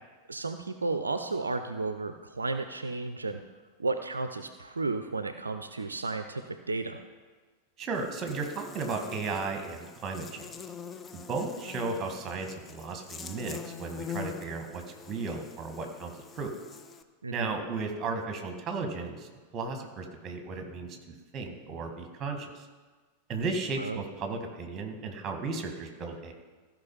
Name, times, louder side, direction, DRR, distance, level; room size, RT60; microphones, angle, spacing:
voice 1, 0.3-3.4 3.8-7.0 17.2-17.6 23.8-24.0, right 3 dB, 75° right, 8 dB, 0.5 m, -33 dB
voice 2, 7.8-10.6 11.1-16.5 17.3-21.0 21.3-22.7 23.3-26.3, right 4 dB, 25° right, 4 dB, 1.7 m, -35 dB
Buzz, 8.0-17.0, left 6 dB, 20° left, 0.6 m, -44 dB
15.0 x 5.1 x 5.5 m, 1.4 s
figure-of-eight pair, 90°, 0 cm